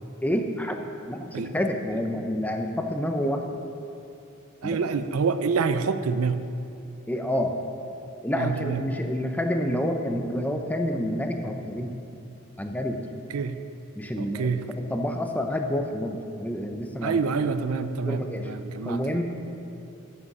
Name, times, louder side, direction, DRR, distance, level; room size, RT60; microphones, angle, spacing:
voice 1, 0.2-0.8 1.1-3.6 4.6-4.8 7.1-7.5 8.2-12.0 12.6-13.0 14.0-17.2 18.0-18.5 18.8-19.2, equal, 5° left, 4 dB, 0.6 m, -28 dB
voice 2, 4.6-6.4 8.3-8.8 13.3-13.6 14.2-14.6 17.0-19.2, right 5 dB, 80° right, 11 dB, 0.5 m, -27 dB
9.3 x 6.1 x 6.6 m, 2.7 s
head